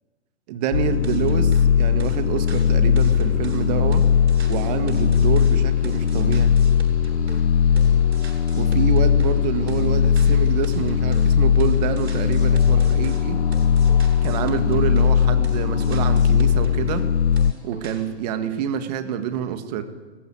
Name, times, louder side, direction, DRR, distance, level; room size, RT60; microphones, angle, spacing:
voice 1, 0.5-4.1 4.5-6.6 8.5-13.4 14.2-17.1 17.6-19.8, right 8 dB, 35° right, 9 dB, 1.8 m, -27 dB
sound 1, 0.7-17.5, left 9 dB, 70° left, 0.6 m, -19 dB
sound 2, 1.0-1.7 2.0-7.5 7.8-9.4 9.7-11.3 11.6-15.2 15.4-17.1 17.4-18.1, right 3 dB, 75° right, 7.9 m, -37 dB
Train, 2.0-18.7, left 5 dB, 25° left, 3.9 m, -48 dB
18.5 x 15.5 x 9.8 m, 1.3 s
figure-of-eight pair, 125°, 34 cm